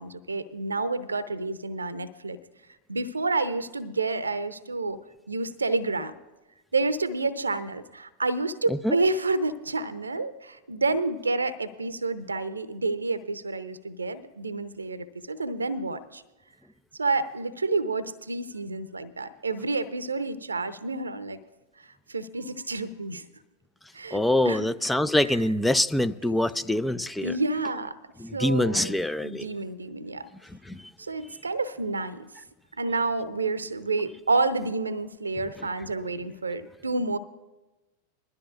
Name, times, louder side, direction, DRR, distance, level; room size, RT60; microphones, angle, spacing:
voice 1, 0.0-2.4 2.9-5.0 5.3-6.1 6.7-16.2 17.0-21.4 21.8-23.2 23.9-24.7 25.2-25.4 26.2-26.4 27.2-28.0 28.3-30.3 31.0-32.3 32.8-37.2, right 3 dB, 75° right, 0.7 m, -29 dB
voice 2, 24.1-27.3 28.2-29.5 30.7-30.8, left 1 dB, 5° left, 0.4 m, -25 dB
21.5 x 12.5 x 2.5 m
figure-of-eight pair, 90°, 0 cm